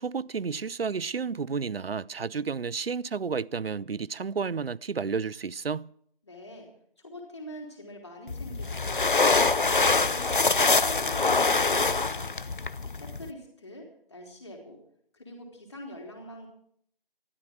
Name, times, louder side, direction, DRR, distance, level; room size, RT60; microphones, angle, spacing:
voice 1, 0.0-5.9, right 5 dB, 80° right, 0.5 m, -31 dB
voice 2, 6.2-6.7 7.0-12.4 12.9-14.8 15.1-16.5, left 1 dB, 30° left, 3.5 m, -45 dB
sound 1, 8.3-13.3, left 3 dB, 60° left, 0.7 m, -24 dB
15.0 x 12.5 x 6.2 m
figure-of-eight pair, 165°, 29 cm